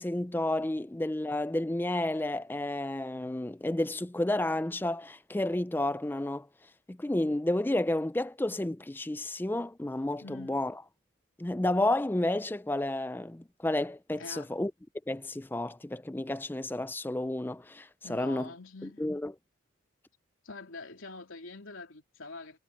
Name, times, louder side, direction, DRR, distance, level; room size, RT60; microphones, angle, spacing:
voice 1, 0.0-6.5 6.9-10.7 11.4-14.7 15.1-18.5 19.0-19.3, left 1 dB, 10° left, 0.4 m, -31 dB
voice 2, 10.2-10.7 14.2-14.5 18.0-19.0 20.4-22.6, left 3 dB, 75° left, 3.1 m, -45 dB
head